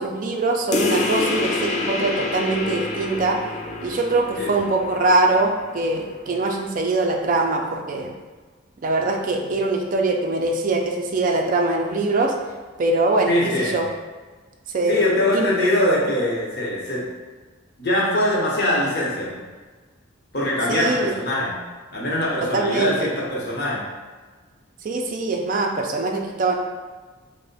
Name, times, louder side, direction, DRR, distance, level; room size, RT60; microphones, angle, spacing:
voice 1, 0.0-3.4 3.8-8.1 8.8-12.3 12.8-13.9 14.7-15.0 15.3-15.5 20.7-21.1 22.4-23.1 24.8-26.6, right 2 dB, 45° right, 2 dB, 0.3 m, -22 dB
sound 1, 0.7-5.8, left 3 dB, 35° left, 0.3 m, -27 dB
voice 2, 13.3-13.8 14.9-17.0 17.8-19.4 20.3-21.6 21.9-23.8, left 1 dB, 55° left, -4 dB, 0.8 m, -22 dB
3.1 x 2.1 x 3.9 m, 1.4 s
head